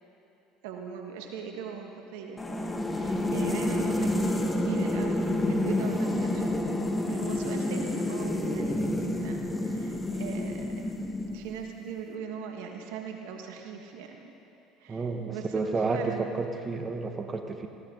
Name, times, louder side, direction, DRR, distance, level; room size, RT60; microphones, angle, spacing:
voice 1, 0.6-6.6 7.1-10.9 11.3-14.3 14.8-16.4, right 6 dB, 75° right, 3 dB, 1.5 m, -40 dB
sound 1, 2.4-11.7, left 1 dB, 15° left, 1.5 m, -29 dB
voice 2, 14.9-17.7, right 4 dB, 30° right, 5 dB, 1.3 m, -31 dB
19.0 x 16.0 x 3.9 m, 3.0 s
hypercardioid pair, 70°, 0 cm